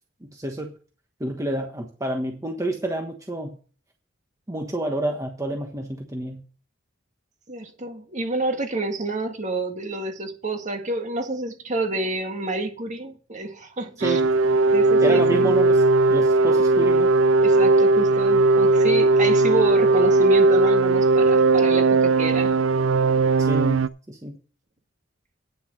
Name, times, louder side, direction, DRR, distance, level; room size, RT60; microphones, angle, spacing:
voice 1, 0.3-0.7 1.2-3.6 4.5-6.4 14.0-14.2 15.0-15.8 16.1-17.1 23.4-24.4, right 1 dB, 15° right, 1.2 m, -28 dB
voice 2, 7.5-14.2 14.7-15.5 17.4-22.6, right 2 dB, 40° right, 1.8 m, -29 dB
sound 1, 14.0-23.9, right 3 dB, 85° right, 0.5 m, -18 dB
9.5 x 6.9 x 6.5 m
head